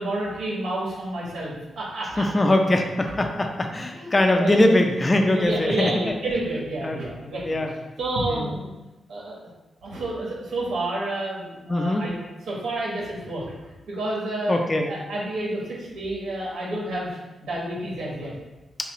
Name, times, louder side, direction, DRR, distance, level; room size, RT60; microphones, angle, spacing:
voice 1, 0.0-2.2 3.9-4.7 5.3-7.6 8.0-8.7 9.1-9.4 9.8-12.1 12.5-13.4 13.9-14.5 14.9-18.3, right 1 dB, 85° right, -5 dB, 1.3 m, -29 dB
voice 2, 2.2-6.1 6.8-7.0 7.4-7.7 8.3-8.5 11.7-12.1 14.5-14.9, left 1 dB, 25° left, 3 dB, 0.4 m, -22 dB
5.5 x 2.0 x 3.0 m, 1.1 s
cardioid pair, 110°, 0 cm